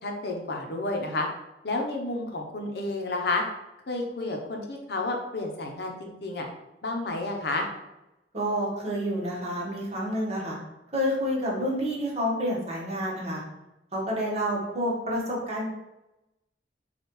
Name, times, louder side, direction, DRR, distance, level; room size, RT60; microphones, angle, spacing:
voice 1, 0.0-1.3 1.6-3.4 3.9-6.5 6.8-7.7, left 2 dB, 65° left, 2 dB, 0.7 m, -30 dB
voice 2, 8.3-10.6 10.9-13.4 13.9-15.7, equal, 35° right, -4 dB, 1.3 m, -29 dB
6.6 x 2.4 x 3.1 m, 0.94 s
head